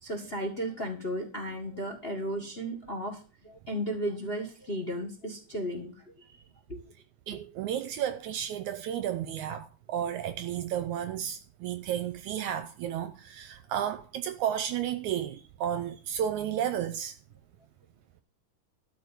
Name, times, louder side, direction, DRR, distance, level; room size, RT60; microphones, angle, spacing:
voice 1, 0.0-6.4 6.7-6.8 10.1-10.2, equal, 30° left, 1.2 m, -35 dB
voice 2, 7.3-17.2, right 10 dB, 75° right, 1.9 m, -32 dB
12.5 x 5.1 x 8.3 m
omnidirectional pair, 3.8 m